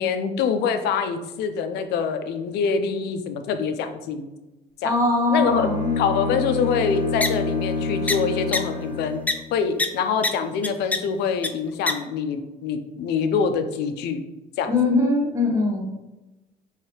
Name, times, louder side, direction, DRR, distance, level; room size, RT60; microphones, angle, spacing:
voice 1, 0.0-4.3 4.8-4.9 5.3-5.7 6.0-9.2 9.5-14.2 14.6-14.8, left 6 dB, 80° left, 8 dB, 0.5 m, -25 dB
voice 2, 4.8-6.0 14.7-15.9, left 2 dB, 20° right, 1 dB, 1.0 m, -21 dB
Bowed string instrument, 5.4-9.4, left 3 dB, 45° left, 1.0 m, -27 dB
sound 1, 7.2-7.3 8.1-8.2 8.5-8.6 9.3-9.4 9.8-9.9 10.2-10.3 10.6-11.0 11.4-11.5 11.9-12.0, left 2 dB, 10° left, 0.3 m, -21 dB
4.7 x 3.2 x 3.0 m, 1.0 s
cardioid pair, 110°, 17 cm